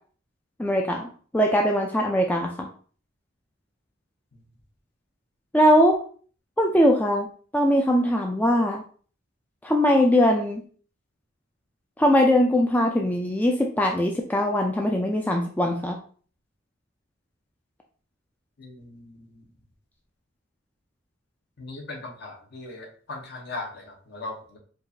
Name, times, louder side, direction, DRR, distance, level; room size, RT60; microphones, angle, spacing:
voice 1, 0.6-1.1 1.3-2.7 5.5-5.9 6.6-7.3 7.5-8.8 9.6-10.6 12.0-16.0, equal, 10° left, 0 dB, 0.3 m, -21 dB
voice 2, 18.6-19.4 21.6-24.6, left 2 dB, 55° left, 1 dB, 0.9 m, -39 dB
4.6 x 2.4 x 2.6 m, 0.43 s
head